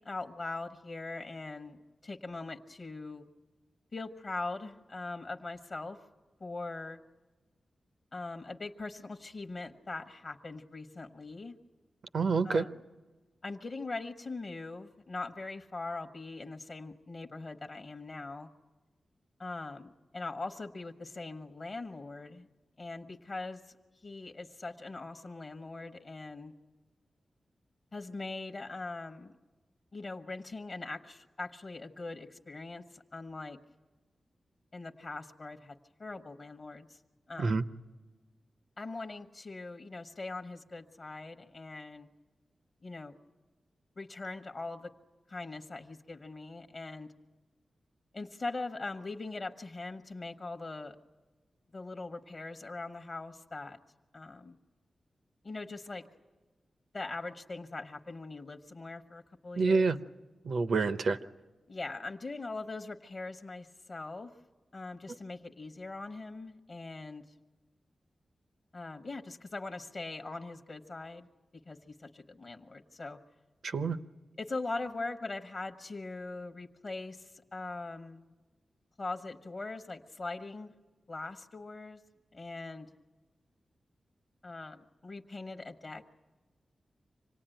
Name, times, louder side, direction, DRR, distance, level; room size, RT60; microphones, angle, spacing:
voice 1, 0.0-3.3 3.9-6.0 6.4-7.0 8.1-11.6 12.4-12.7 13.4-18.5 19.4-22.5 22.8-23.7 24.0-26.5 27.9-29.3 29.9-33.6 34.7-35.7 36.0-37.0 37.3-37.6 38.8-42.1 42.8-43.1 44.0-44.9 45.3-47.1 48.1-51.0 51.7-53.8 54.1-54.6 55.4-56.0 56.9-59.9 61.7-64.3 64.7-67.2 68.7-71.3 71.7-73.2 74.4-78.2 79.0-80.7 81.1-82.0 82.3-82.9 84.4-86.0, left 3 dB, 40° left, 6 dB, 0.9 m, -41 dB
voice 2, 12.1-12.6 37.4-37.6 59.6-60.0 60.4-61.2 73.6-74.0, right 4 dB, 65° right, 11 dB, 0.7 m, -27 dB
26.0 x 18.5 x 9.0 m, 1.3 s
wide cardioid pair, 170°, 0 cm